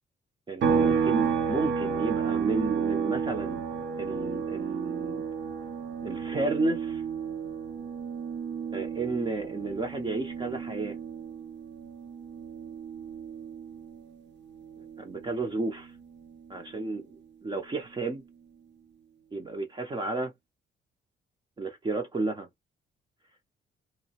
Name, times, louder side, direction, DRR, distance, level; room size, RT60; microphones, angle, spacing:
voice 1, 0.5-3.6 4.0-5.2 6.0-7.0 8.7-11.0 15.0-15.9 16.5-17.1 17.4-18.2 19.3-20.3 21.6-22.5, right 3 dB, 25° right, 0.6 m, -32 dB
sound 1, 0.6-14.2 14.5-16.7, right 6 dB, 65° right, 0.6 m, -32 dB
2.8 x 2.0 x 2.8 m
cardioid pair, 90°, 20 cm